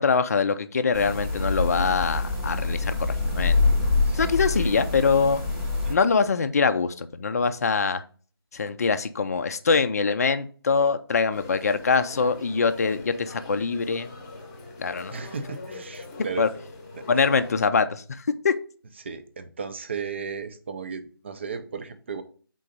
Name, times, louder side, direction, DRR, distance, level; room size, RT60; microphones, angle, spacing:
voice 1, 0.0-3.6 4.1-5.4 5.9-8.0 8.5-14.1 14.8-15.1 16.4-16.5 17.1-18.5, left 5 dB, 40° left, 10 dB, 0.4 m, -23 dB
sound 1, 0.9-5.9, left 3 dB, 5° right, 0.9 m, -25 dB
sound 2, 11.3-17.5, left 3 dB, 20° left, 0.9 m, -42 dB
voice 2, 15.1-16.4 16.9-17.1 19.0-22.2, right 5 dB, 30° right, 9 dB, 0.5 m, -35 dB
4.8 x 3.8 x 5.2 m, 0.41 s
figure-of-eight pair, 165°, 13 cm